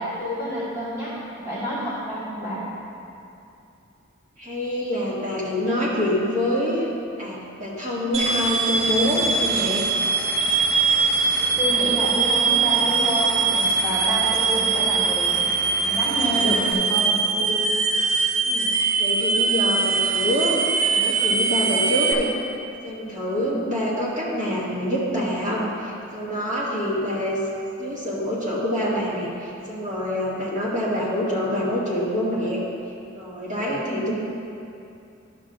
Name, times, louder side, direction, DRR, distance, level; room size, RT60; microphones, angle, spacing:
voice 1, 0.0-2.6 11.6-15.5 15.8-17.6 23.3-23.6 33.9-34.1, equal, 15° right, -10 dB, 1.5 m, -28 dB
voice 2, 4.4-6.9 7.2-9.9 18.4-22.3 22.8-27.4 27.8-32.6 33.1-34.1, equal, 40° right, -7 dB, 1.8 m, -26 dB
sound 1, 8.1-22.1, right 5 dB, 70° right, 0.6 m, -22 dB
Vehicle / Engine, 8.7-16.7, left 1 dB, 5° left, 0.5 m, -37 dB
12.0 x 6.6 x 2.5 m, 2.6 s
head